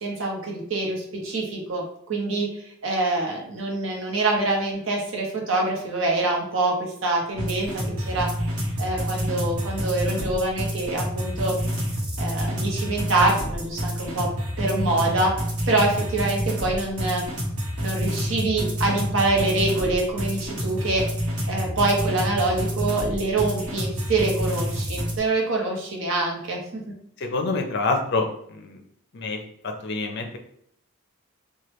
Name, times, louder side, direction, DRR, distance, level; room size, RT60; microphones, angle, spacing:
voice 1, 0.0-2.5 2.8-8.3 8.8-11.5 12.2-14.3 14.6-15.3 15.7-17.2 17.8-21.1 21.5-26.6, right 2 dB, 60° right, -1 dB, 0.8 m, -25 dB
sound 1, 7.4-25.2, equal, 90° right, 1.0 m, -28 dB
voice 2, 27.2-28.8 29.1-29.4 29.6-30.4, left 3 dB, 50° left, 4 dB, 0.5 m, -27 dB
3.1 x 2.2 x 3.0 m, 0.69 s
head